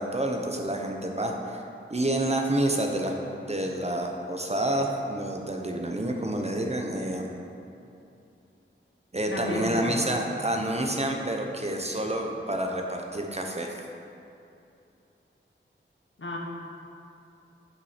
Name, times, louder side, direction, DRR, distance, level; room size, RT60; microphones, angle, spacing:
voice 1, 0.0-1.6 1.9-3.1 3.5-7.3 9.1-13.8, right 1 dB, 30° right, 1 dB, 0.8 m, -28 dB
voice 2, 9.3-10.0 16.2-16.4, left 1 dB, 70° left, -1 dB, 1.2 m, -32 dB
7.1 x 5.7 x 5.0 m, 2.7 s
wide cardioid pair, 70°, 21 cm